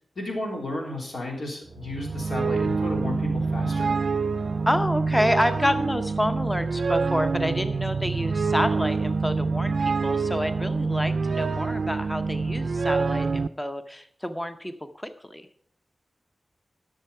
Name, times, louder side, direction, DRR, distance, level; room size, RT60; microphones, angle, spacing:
voice 1, 0.1-3.9, left 2 dB, 85° left, -1 dB, 3.3 m, -33 dB
sound 1, 1.7-13.5, right 4 dB, 70° right, 0.3 m, -26 dB
voice 2, 4.7-15.5, equal, 10° left, 8 dB, 0.7 m, -28 dB
12.0 x 6.7 x 5.5 m, 0.64 s
wide cardioid pair, 90°, 0 cm